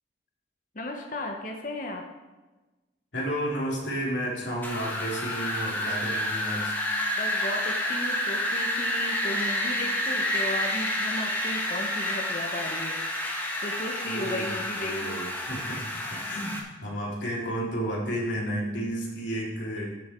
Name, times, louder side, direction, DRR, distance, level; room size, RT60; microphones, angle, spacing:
voice 1, 0.7-2.0 7.2-13.0 13.3-15.2, left 1 dB, 45° left, 2 dB, 1.1 m, -35 dB
voice 2, 3.1-6.7 14.0-14.5 14.8-19.8, right 1 dB, 75° left, -4 dB, 3.3 m, -32 dB
Wind, 4.6-16.6, left 1 dB, 10° left, 1.4 m, -29 dB
14.0 x 7.0 x 4.5 m, 1.2 s
head